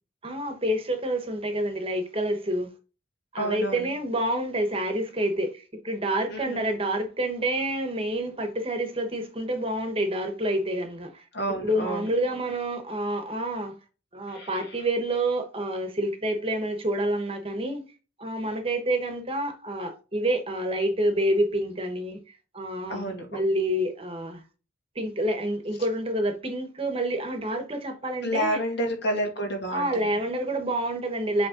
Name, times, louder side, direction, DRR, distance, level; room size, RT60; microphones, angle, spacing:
voice 1, 0.2-2.7 3.3-11.2 11.6-13.7 14.1-17.8 18.2-22.2 22.5-24.4 25.0-28.6 29.7-31.5, right 1 dB, 30° right, 1.1 m, -28 dB
voice 2, 3.4-3.9 6.3-6.6 11.3-12.1 14.3-14.7 22.9-23.3 28.2-29.9, equal, 60° left, 2.3 m, -29 dB
7.8 x 3.5 x 3.8 m
head